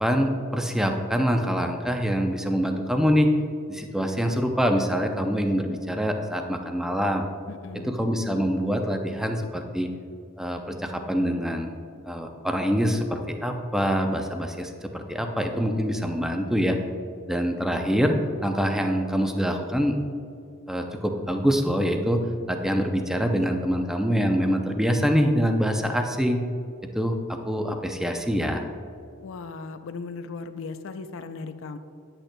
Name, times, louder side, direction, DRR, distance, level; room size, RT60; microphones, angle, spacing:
voice 1, 0.0-3.3 3.7-7.2 7.9-9.9 10.4-11.7 12.1-16.8 17.3-20.0 20.7-22.2 22.5-26.4 26.9-27.1 27.5-28.6, equal, ahead, 4 dB, 0.5 m, -25 dB
voice 2, 7.5-8.1 29.2-31.8, left 4 dB, 65° left, 9 dB, 0.4 m, -37 dB
9.9 x 8.9 x 2.2 m, 2.5 s
head